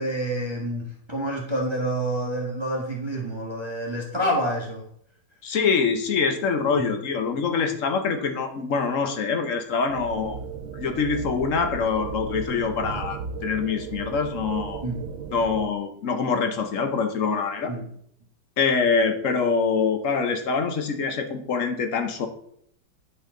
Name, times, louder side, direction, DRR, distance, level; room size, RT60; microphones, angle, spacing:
voice 1, 0.0-4.9 6.7-6.9 14.8-15.1 17.7-17.9, right 1 dB, 15° right, -1 dB, 1.3 m, -28 dB
voice 2, 5.4-10.4 10.7-14.8 15.3-17.7 18.6-22.3, left 5 dB, 50° left, 6 dB, 1.0 m, -25 dB
sound 1, 9.9-15.7, right 6 dB, 75° right, 1.4 m, -35 dB
10.0 x 5.8 x 3.8 m, 0.69 s
omnidirectional pair, 2.2 m